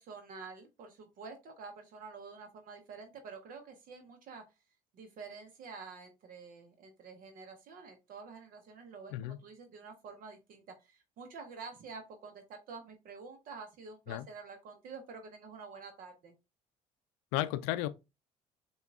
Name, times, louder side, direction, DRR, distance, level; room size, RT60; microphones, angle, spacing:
voice 1, 0.0-4.4 4.9-16.3, right 4 dB, 60° right, 0.8 m, -48 dB
voice 2, 17.3-17.9, left 14 dB, 75° left, 0.4 m, -33 dB
6.8 x 2.4 x 2.4 m
hypercardioid pair, 60°, 16 cm